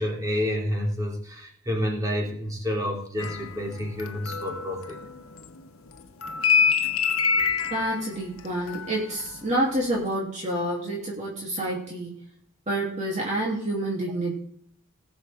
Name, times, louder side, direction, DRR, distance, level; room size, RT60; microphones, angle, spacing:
voice 1, 0.0-5.0, equal, 15° right, -1 dB, 3.3 m, -29 dB
sound 1, 3.2-5.6 5.9-9.5 9.8-10.1, left 6 dB, 70° left, 1.2 m, -26 dB
voice 2, 7.7-12.2 12.7-14.3, right 1 dB, 35° right, -4 dB, 3.1 m, -28 dB
19.5 x 7.2 x 3.7 m, 0.64 s
head